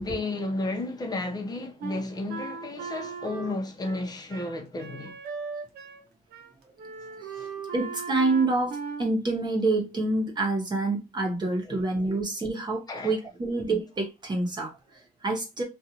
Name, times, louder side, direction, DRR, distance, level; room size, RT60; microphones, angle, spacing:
voice 1, 0.0-5.2 7.3-7.5 11.4-11.8 12.9-13.1, left 2 dB, 25° left, 0.8 m, -33 dB
Wind instrument woodwind instrument, 1.8-6.0 6.3-6.5 6.8-9.1, right 5 dB, 70° right, 0.6 m, -38 dB
voice 2, 7.2-15.6, right 2 dB, 25° right, 1.0 m, -27 dB
2.6 x 2.5 x 2.9 m
cardioid pair, 110°, 17 cm